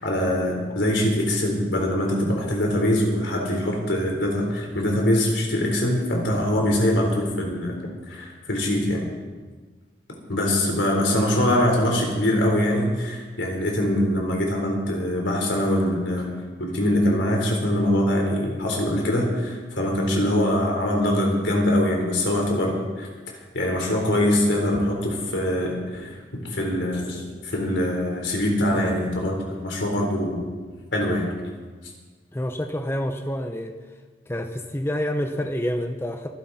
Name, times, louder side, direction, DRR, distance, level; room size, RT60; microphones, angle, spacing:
voice 1, 0.0-7.8 8.1-9.1 10.3-16.3 16.6-23.1 23.5-26.2 26.5-30.4 30.9-31.3, left 1 dB, 90° left, 0 dB, 4.0 m, -23 dB
voice 2, 32.3-33.7 34.3-36.3, equal, 15° left, 6 dB, 0.7 m, -28 dB
24.5 x 11.5 x 4.2 m, 1.4 s
head